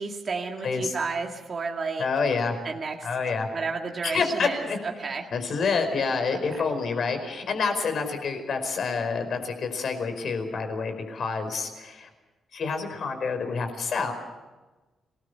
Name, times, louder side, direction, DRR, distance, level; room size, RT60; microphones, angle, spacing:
voice 1, 0.0-2.1 2.6-3.1 3.5-5.3 6.3-6.7, right 4 dB, 35° right, 1 dB, 1.9 m, -32 dB
voice 2, 0.6-0.9 2.0-2.6 3.0-3.5 4.0-4.8 5.3-12.1 12.5-14.1, left 5 dB, 50° left, 6 dB, 4.8 m, -28 dB
26.5 x 19.5 x 6.8 m, 1.2 s
wide cardioid pair, 160°, 0 cm